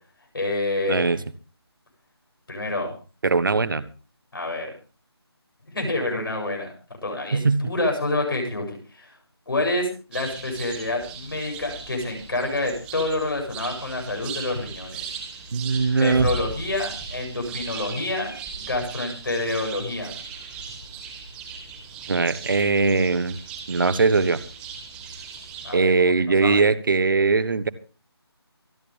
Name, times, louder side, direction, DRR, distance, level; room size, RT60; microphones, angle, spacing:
voice 1, 0.3-1.2 2.5-2.9 4.3-4.7 5.7-6.7 7.0-9.1 9.5-15.0 16.0-20.1 25.6-26.1 26.4-26.6, left 2 dB, 55° left, 3 dB, 7.7 m, -28 dB
voice 2, 3.2-3.8 7.3-7.7 15.5-16.3 17.7-17.8 22.1-23.4 23.7-24.4 25.7-27.7, right 4 dB, 50° right, 15 dB, 1.4 m, -20 dB
sound 1, 10.1-25.8, right 5 dB, 5° right, 1.7 m, -37 dB
25.5 x 10.0 x 3.5 m, 0.37 s
figure-of-eight pair, 165°, 14 cm